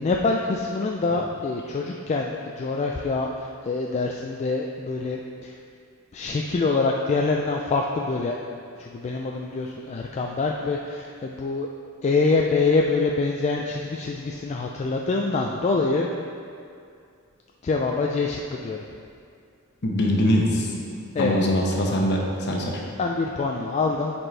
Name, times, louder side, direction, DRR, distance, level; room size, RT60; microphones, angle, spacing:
voice 1, 0.0-5.5 6.1-8.3 8.8-11.7 12.0-16.1 17.6-18.8 21.1-21.4 23.0-24.1, left 3 dB, 30° left, 0 dB, 0.3 m, -25 dB
voice 2, 19.8-20.7 21.2-22.8, equal, 55° left, -1 dB, 0.9 m, -23 dB
8.9 x 4.3 x 3.3 m, 2.4 s
head